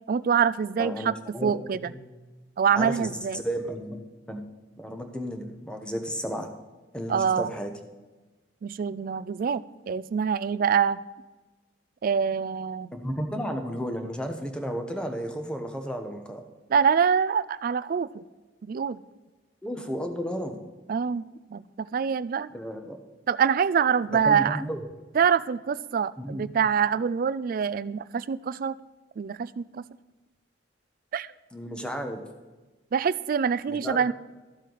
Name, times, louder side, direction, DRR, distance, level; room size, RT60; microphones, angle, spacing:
voice 1, 0.1-1.1 1.4-1.8 2.6-3.4 7.1-7.5 8.6-11.0 12.0-12.9 16.7-18.2 18.6-19.0 20.9-21.2 21.5-22.5 23.3-24.6 25.2-28.7 29.2-29.8 31.1-31.3 32.9-34.1, right 7 dB, 50° right, 18 dB, 0.3 m, -25 dB
voice 2, 0.8-1.5 1.8-2.0 2.7-3.1 3.4-4.0 4.3-4.4 4.8-6.5 6.9-7.7 12.9-16.4 19.6-20.6 22.5-23.0 24.1-24.8 26.2-26.5 31.5-32.2 33.7-34.1, equal, 5° left, 5 dB, 1.0 m, -33 dB
13.0 x 7.4 x 4.0 m, 1.2 s
head